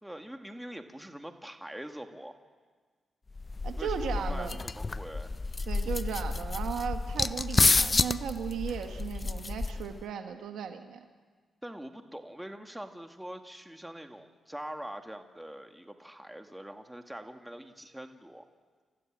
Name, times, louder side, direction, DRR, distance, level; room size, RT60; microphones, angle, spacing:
voice 1, 0.0-2.4 3.8-5.3 11.6-18.5, right 1 dB, 5° right, 5 dB, 2.2 m, -43 dB
sound 1, 3.4-10.0, left 3 dB, 35° left, 0.6 m, -30 dB
voice 2, 3.6-4.6 5.7-11.0, right 7 dB, 80° right, 6 dB, 1.6 m, -36 dB
29.0 x 14.5 x 7.5 m, 1.5 s
supercardioid pair, 55°, 0 cm